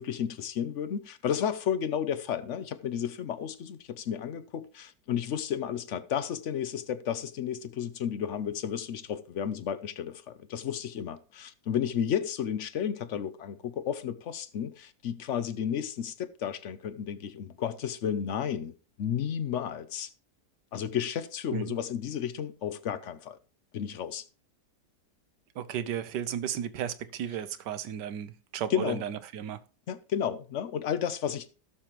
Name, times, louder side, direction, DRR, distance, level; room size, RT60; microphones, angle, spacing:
voice 1, 0.0-20.1 20.7-23.4 23.7-24.2 28.7-29.0 29.9-31.6, left 8 dB, 60° left, 0.9 m, -32 dB
voice 2, 25.6-29.6, right 9 dB, 80° right, 1.4 m, -34 dB
16.5 x 6.9 x 3.0 m
omnidirectional pair, 1.8 m